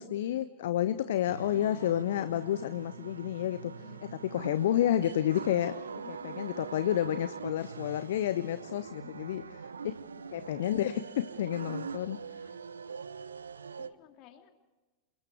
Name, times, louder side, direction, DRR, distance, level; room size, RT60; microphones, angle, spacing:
voice 1, 0.0-3.7 4.0-5.7 6.1-10.0 10.3-12.2, left 11 dB, 55° left, 13 dB, 0.7 m, -30 dB
sound 1, 1.3-13.9, right 6 dB, 70° right, 0.8 m, -43 dB
voice 2, 1.5-1.9 3.7-4.0 6.0-6.4 9.0-9.5 10.2-10.5 13.8-14.5, left 10 dB, 40° left, 6 dB, 2.7 m, -54 dB
28.0 x 20.5 x 4.7 m, 1.2 s
figure-of-eight pair, 90°, 0 cm